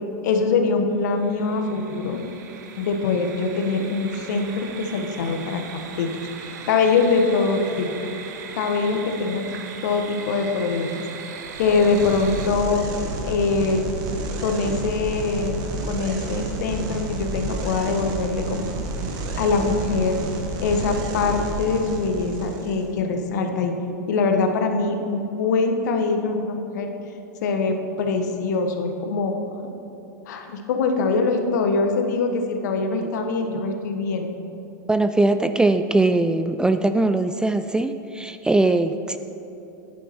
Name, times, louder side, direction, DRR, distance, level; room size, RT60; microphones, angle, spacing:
voice 1, 0.2-2.2 2.8-6.1 6.4-7.9 8.5-9.5 9.8-11.0 11.6-12.8 13.2-13.9 14.4-15.6 15.9-18.7 19.4-20.2 20.6-23.7 24.1-26.9 27.4-29.3 30.3-34.3, left 4 dB, 65° left, 5 dB, 1.2 m, -23 dB
sound 1, 1.0-12.5, right 6 dB, 65° right, 1.0 m, -39 dB
sound 2, 11.5-22.9, right 2 dB, 40° right, 1.5 m, -31 dB
voice 2, 34.9-39.2, right 2 dB, 10° right, 9 dB, 0.3 m, -21 dB
10.0 x 10.0 x 4.5 m, 3.0 s
hypercardioid pair, 95°, 10 cm